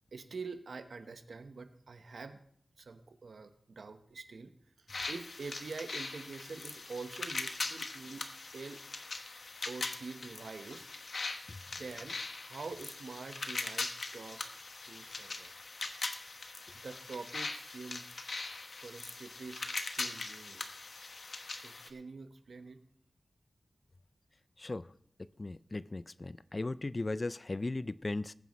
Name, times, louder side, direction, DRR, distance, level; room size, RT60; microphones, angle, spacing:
voice 1, 0.1-2.4 2.8-4.5 4.8-8.2 8.5-8.8 9.7-10.9 11.7-14.4 14.9-15.5 16.7-18.1 18.7-19.7 20.0-20.7 21.5-22.8 25.8-26.0, right 4 dB, 85° right, 8 dB, 1.0 m, -46 dB
sound 1, 4.9-21.9, left 3 dB, 65° left, 1.1 m, -41 dB
voice 2, 25.4-28.3, left 2 dB, 35° left, 17 dB, 0.4 m, -37 dB
21.0 x 9.3 x 3.1 m, 0.68 s
wide cardioid pair, 95°, 0 cm